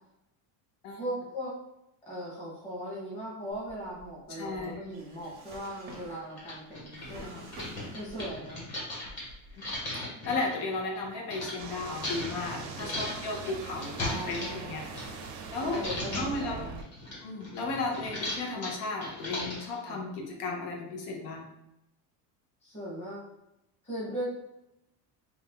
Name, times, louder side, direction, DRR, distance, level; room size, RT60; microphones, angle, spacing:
voice 1, 1.0-1.5 2.1-7.5 7.9-8.7 12.6-12.9 14.0-14.7 15.6-16.8 19.8-20.0 22.6-23.2 23.8-24.3, equal, 15° left, -6 dB, 0.9 m, -39 dB
Drawer open or close, 3.5-8.7 9.0-9.8, right 1 dB, 25° right, 0.5 m, -49 dB
voice 2, 4.3-4.8 10.1-14.8 15.5-15.9 16.1-16.6 17.2-21.5, left 3 dB, 80° left, 0 dB, 0.8 m, -34 dB
sound 1, 5.2-5.3 5.9-6.0 6.3-11.5 12.0-15.5 15.7-16.4 16.8-19.8, left 1 dB, 35° left, 1.3 m, -38 dB
sound 2, 11.6-16.8, right 5 dB, 85° right, 0.6 m, -42 dB
2.6 x 2.2 x 3.5 m, 0.87 s
cardioid pair, 170°, 43 cm